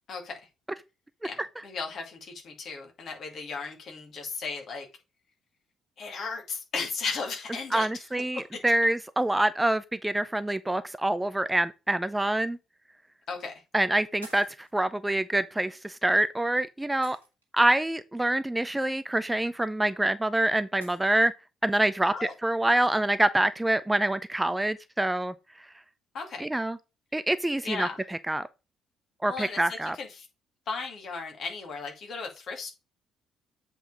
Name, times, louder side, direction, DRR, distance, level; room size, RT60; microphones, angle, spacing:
voice 1, 0.1-0.4 1.2-4.9 6.0-7.9 13.3-13.5 22.1-22.3 26.1-26.5 27.6-28.0 29.3-30.3 30.7-32.7, left 4 dB, 50° left, 2.4 m, -36 dB
voice 2, 7.7-12.6 13.7-17.2 17.5-21.3 21.6-25.3 26.4-26.8 27.1-28.5 29.2-30.0, right 1 dB, 10° right, 0.6 m, -26 dB
sound 1, 13.4-13.6 14.2-14.7 16.1-16.2 17.0-17.6 19.6-19.7 20.8-21.2, right 2 dB, 85° right, 1.6 m, -50 dB
7.8 x 4.6 x 5.0 m
figure-of-eight pair, 45°, 0 cm